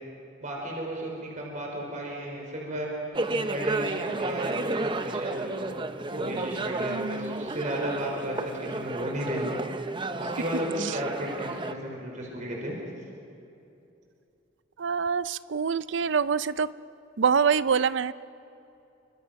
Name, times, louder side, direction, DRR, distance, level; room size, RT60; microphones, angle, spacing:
voice 1, 0.4-2.9 3.3-5.7 6.1-9.5 10.2-12.7, right 1 dB, 40° right, -1 dB, 4.9 m, -33 dB
sound 1, 3.1-11.7, right 2 dB, 25° right, 0.7 m, -32 dB
voice 2, 6.9-7.5 10.8-11.0 14.8-16.7 17.2-18.1, right 6 dB, 65° right, 15 dB, 0.5 m, -26 dB
29.0 x 25.0 x 6.0 m, 2.8 s
head